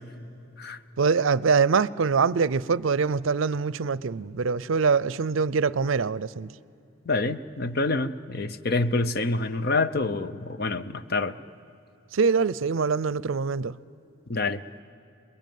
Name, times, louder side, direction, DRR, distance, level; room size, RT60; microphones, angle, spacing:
voice 1, 1.0-6.5 12.1-13.7, right 5 dB, 75° right, 0.5 m, -24 dB
voice 2, 7.0-11.3 14.3-14.6, left 3 dB, 50° left, 0.7 m, -27 dB
28.0 x 21.5 x 9.3 m
head